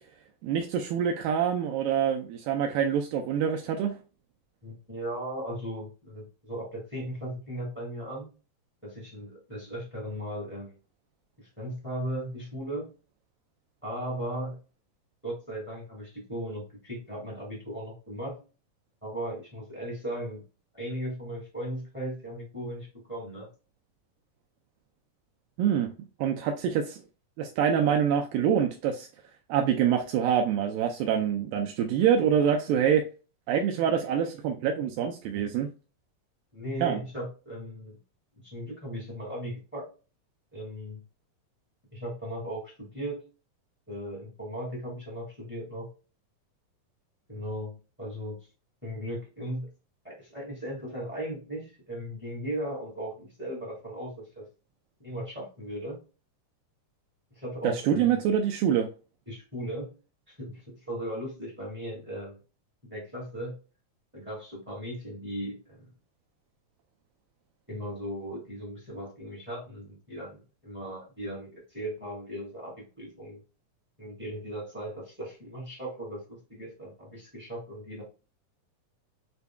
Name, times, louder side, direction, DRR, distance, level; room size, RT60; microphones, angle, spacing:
voice 1, 0.4-3.9 25.6-25.9 26.2-27.0 27.4-29.1 29.5-33.0 33.5-35.7 36.8-37.0 57.6-58.9, right 8 dB, 85° right, 3 dB, 2.2 m, -25 dB
voice 2, 4.6-8.3 8.8-10.8 11.4-12.9 13.8-14.6 15.2-18.4 19.0-20.4 20.7-23.5 36.5-38.0 38.4-39.8 40.5-41.0 41.9-43.2 43.9-45.9 47.3-48.4 48.8-49.7 50.0-54.5 55.0-56.0 57.3-58.2 59.3-59.9 60.3-62.4 62.8-63.5 64.1-65.9 67.7-73.4 74.0-78.0, equal, 5° right, -3 dB, 0.8 m, -37 dB
6.8 x 2.6 x 2.2 m, 0.33 s
omnidirectional pair, 4.1 m